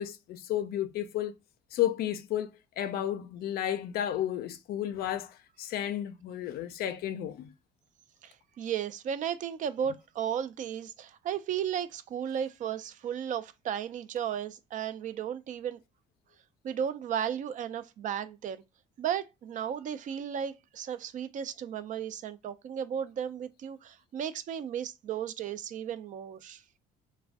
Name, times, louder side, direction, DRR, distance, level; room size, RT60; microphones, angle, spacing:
voice 1, 0.0-1.3 1.7-2.5 2.8-7.5, left 11 dB, 65° left, 0.4 m, -32 dB
voice 2, 8.2-15.8 16.6-18.6 19.0-26.6, right 9 dB, 50° right, 0.4 m, -34 dB
2.4 x 2.1 x 3.4 m
cardioid pair, 110°, 17 cm